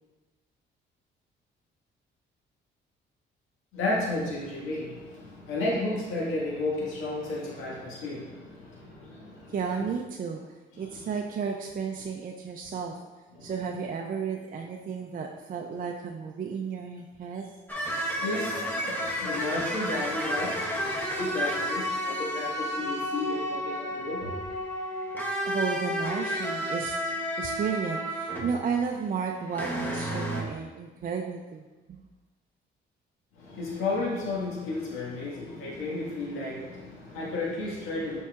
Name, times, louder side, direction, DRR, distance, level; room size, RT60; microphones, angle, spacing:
voice 1, 3.7-9.6 10.7-11.1 13.3-13.5 18.2-20.5 21.1-24.3 33.4-38.2, left 2 dB, 90° left, -5 dB, 1.8 m, -33 dB
voice 2, 9.5-10.4 10.8-12.9 13.4-17.5 25.4-27.1 27.4-31.6, right 6 dB, 45° right, 2 dB, 0.5 m, -33 dB
sound 1, 17.7-28.8 29.3-30.4, equal, 10° left, 1.2 m, -31 dB
7.2 x 5.5 x 2.4 m, 1.2 s
cardioid pair, 90°, 20 cm